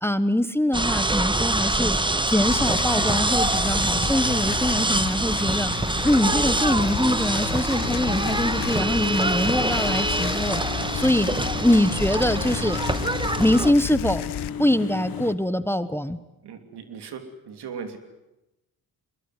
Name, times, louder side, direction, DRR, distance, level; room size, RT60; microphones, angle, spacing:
voice 1, 0.0-2.0 2.3-5.7 6.0-10.6 10.9-11.3 11.6-12.8 13.4-14.2 14.6-16.2, left 1 dB, 5° left, 13 dB, 1.2 m, -23 dB
sound 1, 0.7-13.7, right 2 dB, 10° right, 1.4 m, -25 dB
sound 2, 2.5-14.5, left 13 dB, 75° left, 1.1 m, -34 dB
sound 3, 7.7-15.3, left 8 dB, 60° left, 1.6 m, -34 dB
voice 2, 16.4-18.0, right 6 dB, 80° right, 8 dB, 3.2 m, -38 dB
23.0 x 21.5 x 9.5 m, 0.95 s
cardioid pair, 85°, 39 cm